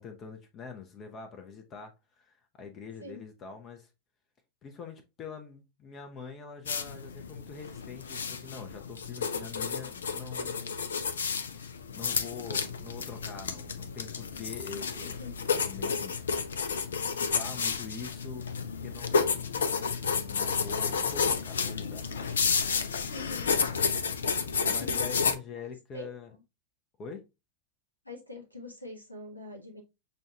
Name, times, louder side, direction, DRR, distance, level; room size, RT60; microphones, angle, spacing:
voice 1, 0.0-3.9 4.6-10.8 11.2-11.6 11.9-15.2 15.6-16.2 16.7-22.4 24.3-26.4 27.0-27.2, left 5 dB, 30° left, 0.7 m, -45 dB
sound 1, 6.7-25.4, left 5 dB, 65° left, 0.4 m, -31 dB
voice 2, 15.0-15.5 23.1-23.6 24.8-25.4 25.9-26.1 28.0-29.8, left 2 dB, 90° left, 1.1 m, -43 dB
6.3 x 2.3 x 2.7 m
figure-of-eight pair, 90°, 0 cm